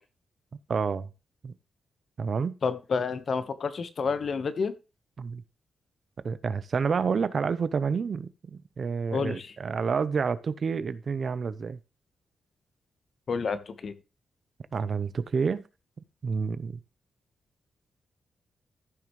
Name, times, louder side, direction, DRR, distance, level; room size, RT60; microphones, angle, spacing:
voice 1, 0.7-1.1 1.4-1.5 2.2-2.6 5.2-5.4 6.2-11.8 14.7-15.6 16.2-16.8, right 5 dB, 50° right, 0.7 m, -29 dB
voice 2, 2.6-4.7 9.1-9.5 13.3-14.0, left 5 dB, 50° left, 1.1 m, -29 dB
14.5 x 6.0 x 3.1 m
cardioid pair, 95°, 0 cm